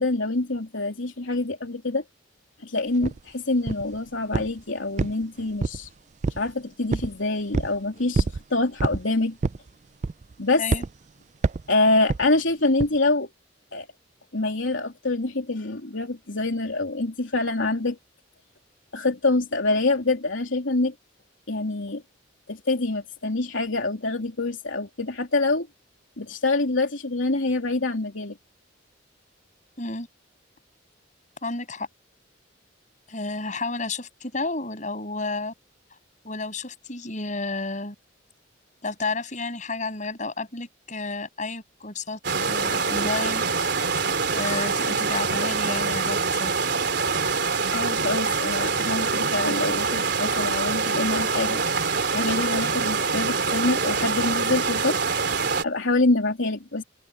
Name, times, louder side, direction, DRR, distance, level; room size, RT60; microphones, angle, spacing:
voice 1, 0.0-2.0 2.6-5.9 6.4-9.4 10.4-10.6 11.7-13.3 13.7-13.9 14.3-18.0 18.9-20.9 21.5-22.0 22.5-25.7 26.2-28.4 47.7-51.6 52.1-55.0 55.6-56.8, left 2 dB, 80° left, 3.1 m, -25 dB
sound 1, 3.0-3.2 3.7-4.0 4.3-4.6 5.0-5.9 6.2-6.5 6.9-7.1 7.5-7.8 8.1-8.4 8.8-9.0 9.4-9.7 10.0-10.3 10.7-10.9 11.4-11.7 12.1-12.3 12.8-13.0, right 3 dB, 35° right, 0.4 m, -26 dB
voice 2, 29.8-30.1 31.4-31.9 33.1-35.5 36.2-38.0 38.8-43.4 44.3-46.5, left 3 dB, 40° left, 7.2 m, -31 dB
sound 2, 42.2-55.6, right 4 dB, 60° right, 3.9 m, -25 dB
open air
head